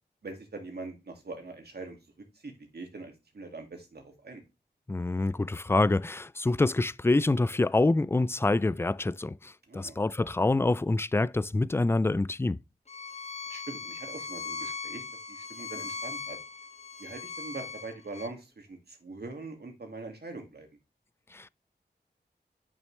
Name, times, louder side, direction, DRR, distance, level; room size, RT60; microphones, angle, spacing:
voice 1, 0.2-2.0 2.3-4.4 9.7-10.0 13.5-15.0 15.3-16.4 17.0-20.7, right 3 dB, 65° right, 2.2 m, -42 dB
voice 2, 4.9-12.6 21.3-21.5, left 2 dB, 15° left, 0.3 m, -26 dB
Bowed string instrument, 12.9-18.3, left 4 dB, 40° left, 0.9 m, -39 dB
8.9 x 6.1 x 3.2 m
cardioid pair, 40°, 18 cm